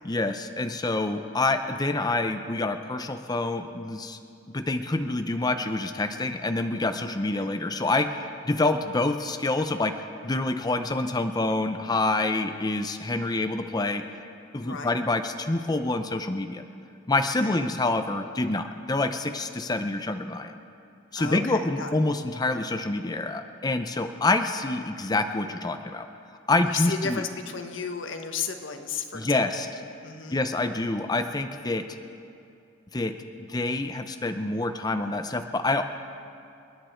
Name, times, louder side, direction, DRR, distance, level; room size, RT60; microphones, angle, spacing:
voice 1, 0.0-4.2 4.5-9.9 10.2-14.0 14.5-16.6 17.1-20.6 21.1-26.1 26.5-27.2 29.1-29.7 30.3-31.8 32.9-33.1 33.5-35.8, left 2 dB, 20° left, 7 dB, 0.6 m, -27 dB
voice 2, 14.6-14.9 17.3-17.7 21.1-22.0 26.6-29.7 30.0-30.4, left 6 dB, 90° left, 6 dB, 1.1 m, -34 dB
28.0 x 10.0 x 4.5 m, 2.5 s
head